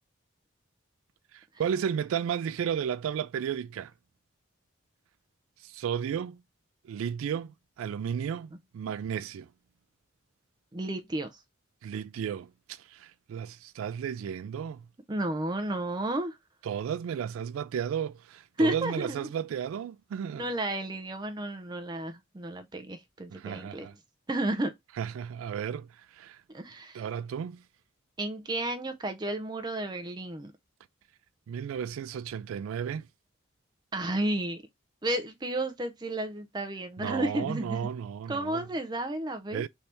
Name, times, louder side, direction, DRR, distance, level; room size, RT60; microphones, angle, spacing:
voice 1, 1.3-3.9 5.6-6.4 6.8-9.5 11.8-14.8 16.6-20.5 23.3-23.9 25.0-26.4 26.9-27.6 31.5-33.1 37.0-38.6 39.5-39.7, right 8 dB, 90° right, 0.3 m, -33 dB
voice 2, 10.7-11.3 15.1-16.4 18.6-19.2 20.4-23.9 24.3-24.7 26.5-27.0 28.2-30.5 33.9-34.6 35.0-37.8 38.3-39.7, right 1 dB, 20° right, 0.4 m, -32 dB
3.4 x 2.7 x 4.3 m
head